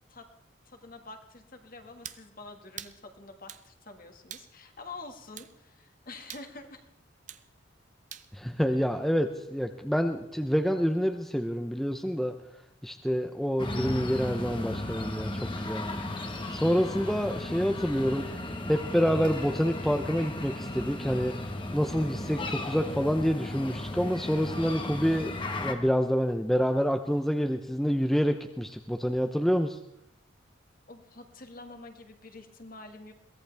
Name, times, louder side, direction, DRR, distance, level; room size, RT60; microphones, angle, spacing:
voice 1, 0.6-6.8 30.9-33.1, left 3 dB, 45° left, 5 dB, 1.8 m, -47 dB
sound 1, 2.0-2.2 2.8-3.0 3.5-3.7 4.3-4.5 5.4-5.5 6.3-6.5 7.3-7.5 8.1-8.3, right 10 dB, 40° right, 0.7 m, -43 dB
voice 2, 8.3-12.3 12.8-15.3 15.6-16.0 16.5-18.2 18.7-21.3 21.7-25.3 25.6-29.8, equal, ahead, 5 dB, 0.6 m, -27 dB
sound 2, 13.6-25.7, left 1 dB, 25° left, 1.3 m, -35 dB
22.5 x 17.0 x 3.4 m, 0.77 s
head